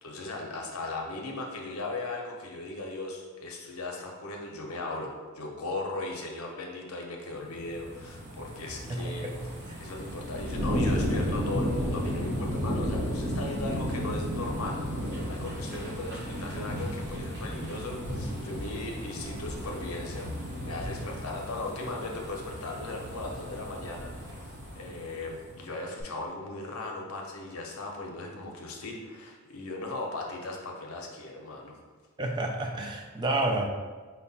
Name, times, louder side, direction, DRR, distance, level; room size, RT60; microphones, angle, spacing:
voice 1, 0.0-9.3 9.8-20.3 20.6-31.8, left 2 dB, 70° left, 0 dB, 0.7 m, -38 dB
sound 1, 7.4-25.6 26.0-26.1, equal, 55° right, 1.0 m, -34 dB
voice 2, 8.9-9.8 32.2-33.7, right 2 dB, 20° right, 3 dB, 0.3 m, -30 dB
4.6 x 2.2 x 4.0 m, 1.4 s
head